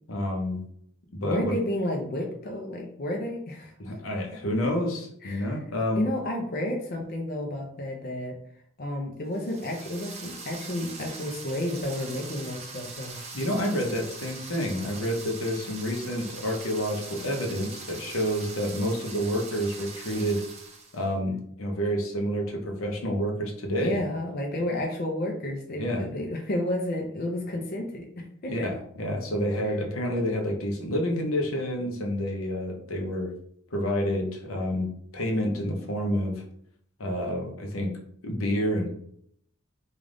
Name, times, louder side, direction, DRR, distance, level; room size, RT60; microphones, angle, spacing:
voice 1, 0.1-0.6 1.2-1.5 3.8-6.1 13.3-20.4 20.9-24.0 25.8-26.1 28.5-33.3 33.7-34.9 35.1-36.4 37.0-37.9 38.2-38.9, equal, 85° left, 2 dB, 0.8 m, -29 dB
voice 2, 1.2-3.7 5.2-5.6 6.0-8.4 8.8-13.2 23.8-28.7, left 1 dB, 45° left, 1 dB, 0.6 m, -31 dB
sound 1, 9.3-21.0, right 4 dB, 30° right, 0.6 m, -42 dB
3.4 x 2.4 x 3.7 m, 0.67 s
head